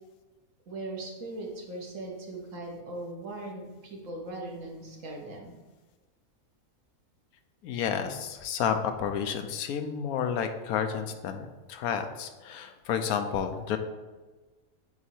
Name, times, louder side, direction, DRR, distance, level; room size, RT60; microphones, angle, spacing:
voice 1, 0.7-5.5, right 2 dB, 60° right, -1 dB, 1.4 m, -39 dB
voice 2, 7.6-13.8, left 7 dB, 85° left, 7 dB, 1.1 m, -31 dB
7.9 x 2.8 x 4.4 m, 1.3 s
omnidirectional pair, 1.5 m